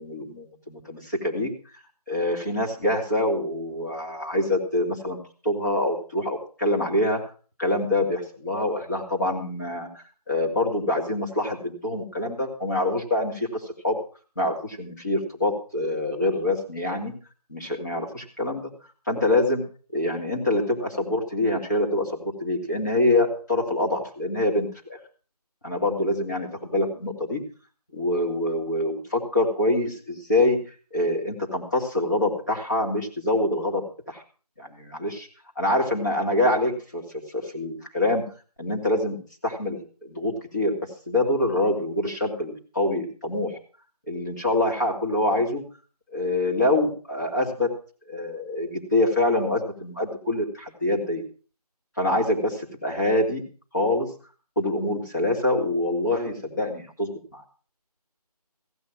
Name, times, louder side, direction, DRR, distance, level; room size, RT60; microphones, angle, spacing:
voice 1, 0.0-1.5 2.1-5.2 5.4-7.2 7.6-14.0 14.4-17.1 17.5-18.6 19.1-19.6 19.9-25.0 25.6-27.4 27.9-30.6 30.9-34.2 34.6-35.3 35.6-37.0 37.3-38.3 38.6-39.2 39.4-40.8 41.1-43.6 44.1-45.6 46.1-47.7 48.1-51.2 52.0-53.4 53.7-54.1 54.6-57.4, left 1 dB, 30° left, -1 dB, 2.8 m, -25 dB
15.5 x 9.4 x 6.0 m, 0.39 s
figure-of-eight pair, 175°, 20 cm